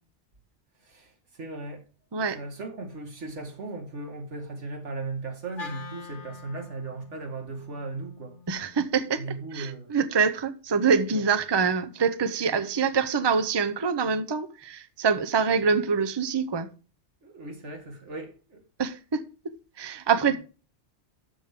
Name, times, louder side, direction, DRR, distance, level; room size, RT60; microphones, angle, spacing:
voice 1, 0.8-1.9 2.3-8.4 9.2-9.9 12.5-12.6 17.2-18.6 20.3-20.4, right 3 dB, 90° right, 2.3 m, -37 dB
Wind instrument woodwind instrument, 5.6-9.8, left 5 dB, 50° left, 1.1 m, -46 dB
voice 2, 8.5-9.2 9.5-16.7 18.8-20.4, right 5 dB, 25° right, 0.7 m, -25 dB
12.5 x 7.2 x 3.7 m
omnidirectional pair, 1.2 m